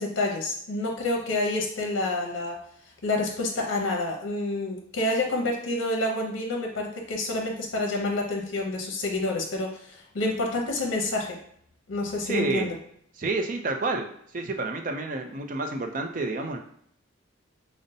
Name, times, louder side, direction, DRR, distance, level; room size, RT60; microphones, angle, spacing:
voice 1, 0.0-2.6 3.0-11.4 11.9-12.8, left 2 dB, 75° left, 1 dB, 0.6 m, -28 dB
voice 2, 12.3-12.7 13.2-14.1 14.3-16.6, right 3 dB, 40° right, 4 dB, 0.4 m, -29 dB
5.1 x 2.1 x 2.7 m, 0.67 s
head